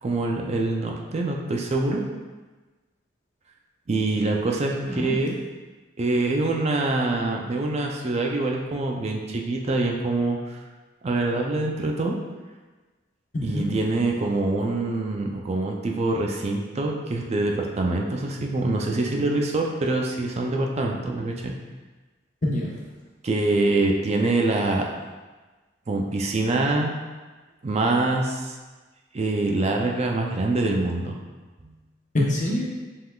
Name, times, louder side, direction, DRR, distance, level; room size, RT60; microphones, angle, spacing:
voice 1, 0.0-2.0 3.9-5.4 6.0-10.6 11.0-12.2 13.4-21.5 23.2-24.9 25.9-26.9 27.6-28.6 29.1-31.2 31.6-31.7, right 2 dB, 35° right, 1 dB, 0.4 m, -25 dB
voice 2, 4.8-5.2 13.3-13.8 22.4-22.9 32.1-32.6, left 1 dB, 45° left, -3 dB, 0.9 m, -26 dB
5.4 x 3.6 x 2.3 m, 1.3 s
head